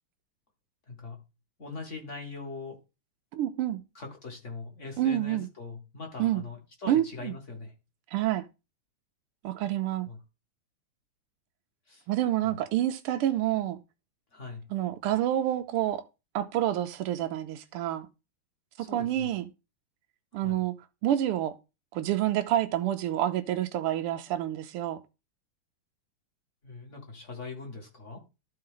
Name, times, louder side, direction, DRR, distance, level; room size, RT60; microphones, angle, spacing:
voice 1, 0.9-1.2 1.6-2.8 3.9-7.7 10.1-10.2 11.9-12.1 12.4-12.6 14.3-14.7 18.8-19.3 20.3-20.6 26.6-28.2, left 3 dB, 35° left, 2.1 m, -41 dB
voice 2, 3.3-3.8 5.0-5.5 6.2-6.4 6.9-7.3 8.1-8.4 9.4-10.1 12.1-13.8 14.7-16.0 16.3-18.1 18.8-19.4 20.3-20.7 21.0-21.5 21.9-25.0, right 12 dB, 90° right, 1.6 m, -28 dB
13.0 x 4.4 x 3.8 m
omnidirectional pair, 2.4 m